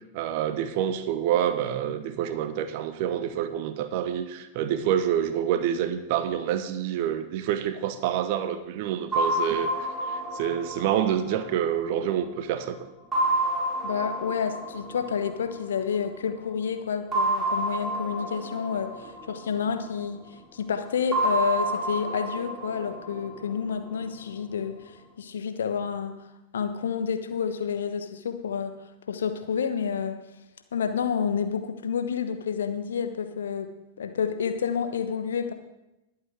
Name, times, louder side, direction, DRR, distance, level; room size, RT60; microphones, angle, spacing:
voice 1, 0.1-12.9, right 10 dB, 50° right, 11 dB, 1.0 m, -27 dB
sound 1, 9.1-12.4 13.1-16.0 17.1-20.2 21.1-24.2, right 1 dB, 15° right, 5.3 m, -30 dB
voice 2, 13.8-20.2 20.5-24.8 25.2-26.2 26.5-28.8 29.1-30.2 30.7-33.7 34.0-35.5, left 7 dB, 65° left, 8 dB, 1.1 m, -29 dB
21.0 x 8.0 x 3.6 m, 0.95 s
figure-of-eight pair, 90°, 0 cm